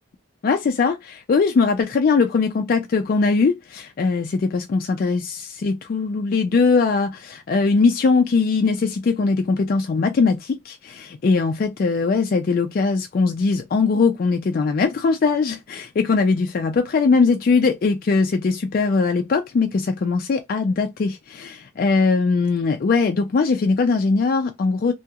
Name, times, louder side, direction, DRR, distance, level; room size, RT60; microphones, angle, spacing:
voice 1, 0.4-24.9, left 4 dB, 50° left, 0.3 m, -20 dB
2.7 x 2.3 x 2.8 m
head